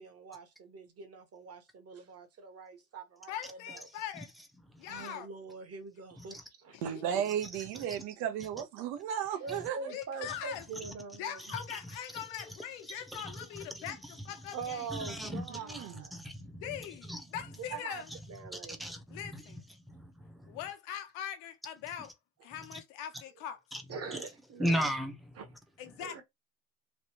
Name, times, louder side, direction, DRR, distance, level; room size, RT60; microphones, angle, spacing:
voice 1, 0.0-3.9 4.9-6.8 9.4-11.4 14.5-16.1 17.6-18.0 18.3-18.8 23.9-24.9 25.3-25.5 26.0-26.2, right 5 dB, 35° right, 1.2 m, -43 dB
voice 2, 3.3-4.3 4.8-5.3 6.7-7.0 9.9-10.6 11.2-14.9 16.6-18.1 19.1-19.6 20.5-22.1 22.4-23.6 25.8-26.2, left 10 dB, 85° left, 1.0 m, -42 dB
voice 3, 6.8-9.9 15.5-16.0, right 9 dB, 75° right, 1.0 m, -35 dB
voice 4, 14.9-16.6 17.1-17.2 18.5-19.4 19.9-20.6 23.7-23.8 24.6-25.2, equal, ahead, 0.8 m, -35 dB
3.2 x 2.4 x 2.9 m
supercardioid pair, 105°, 39 cm